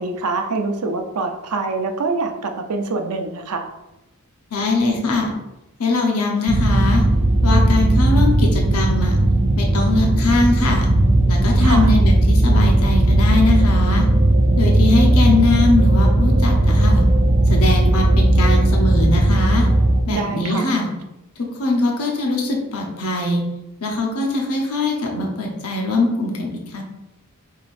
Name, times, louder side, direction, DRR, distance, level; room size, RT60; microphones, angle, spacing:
voice 1, 0.0-3.7 11.6-11.9 20.1-20.7, right 3 dB, 90° right, 5 dB, 0.6 m, -25 dB
voice 2, 4.5-5.3 5.8-7.0 7.4-9.2 9.6-10.9 11.3-14.1 14.6-17.1 17.5-19.7 20.1-20.9 21.4-23.4 23.8-26.8, left 2 dB, 75° left, 0 dB, 0.8 m, -21 dB
sound 1, 6.5-20.0, right 1 dB, 30° right, 0.4 m, -16 dB
5.2 x 3.7 x 2.5 m, 0.93 s
head